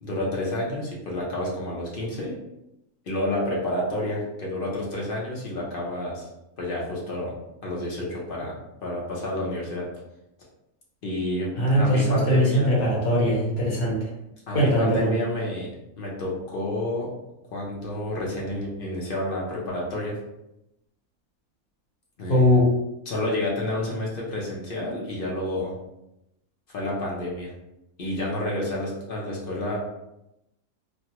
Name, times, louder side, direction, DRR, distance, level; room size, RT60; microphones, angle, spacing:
voice 1, 0.0-2.4 3.1-6.3 6.6-7.3 7.6-8.6 8.8-9.9 11.0-12.7 14.5-15.7 16.0-17.1 17.5-20.2 22.2-22.6 23.1-25.8 26.7-27.5 28.0-29.8, left 1 dB, 45° left, -4 dB, 0.8 m, -29 dB
voice 2, 11.6-14.1 14.5-15.1 22.3-22.6, equal, 75° left, -5 dB, 1.5 m, -21 dB
3.1 x 2.2 x 2.9 m, 0.87 s
omnidirectional pair, 1.5 m